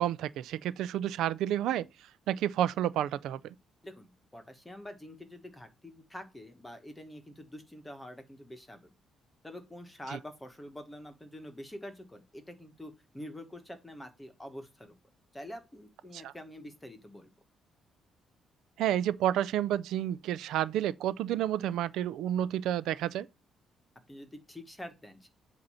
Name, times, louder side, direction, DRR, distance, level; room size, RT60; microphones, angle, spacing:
voice 1, 0.0-1.9 2.3-3.5 10.1-10.2 16.1-16.3 18.8-23.3, right 11 dB, 85° right, 0.4 m, -30 dB
voice 2, 3.8-8.9 9.4-14.9 15.3-17.3 24.1-25.3, left 1 dB, 5° left, 1.2 m, -46 dB
7.9 x 2.7 x 5.6 m
cardioid pair, 175°, 0 cm